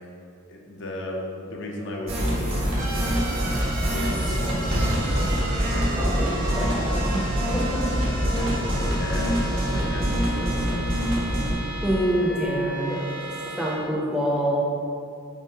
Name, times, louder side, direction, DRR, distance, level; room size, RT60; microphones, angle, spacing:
voice 1, 0.5-3.3 3.9-5.1 9.0-10.8, left 1 dB, 65° left, 0 dB, 0.6 m, -35 dB
sound 1, 2.1-11.5, equal, 75° right, 1.3 m, -25 dB
sound 2, 2.8-13.7, right 2 dB, 40° right, 0.6 m, -34 dB
sound 3, 4.0-9.7, equal, 80° left, 1.4 m, -40 dB
voice 2, 6.0-7.2 7.5-7.6 11.8-13.0 13.6-14.6, right 1 dB, 5° right, -4 dB, 0.6 m, -26 dB
5.6 x 2.0 x 4.8 m, 2.4 s
head